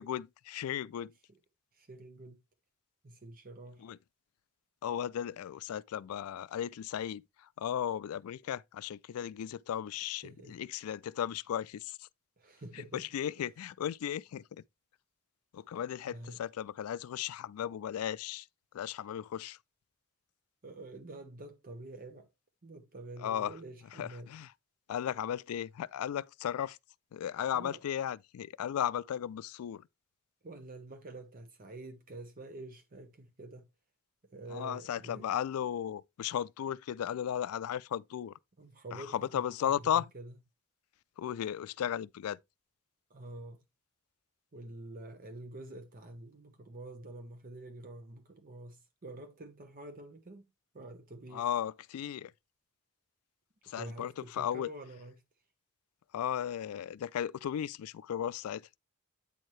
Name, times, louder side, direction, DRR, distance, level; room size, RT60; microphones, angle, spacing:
voice 1, 0.0-1.1 3.8-4.0 4.8-12.1 12.9-14.6 15.5-18.5 18.7-19.6 23.2-23.5 24.0-24.5 24.9-26.8 27.1-29.9 34.5-38.3 38.9-40.1 41.2-42.4 51.3-52.3 53.6-54.7 56.1-58.7, left 9 dB, 90° left, 0.3 m, -35 dB
voice 2, 1.7-2.4 3.0-3.9 10.2-10.6 12.4-13.1 13.4-13.5 16.0-16.4 20.6-22.3 22.6-24.3 27.5-27.8 30.4-33.7 34.3-35.3 38.6-40.3 43.1-43.6 44.5-50.5 50.7-51.5 53.6-55.1, right 2 dB, 40° right, 0.8 m, -47 dB
8.6 x 4.6 x 3.1 m
head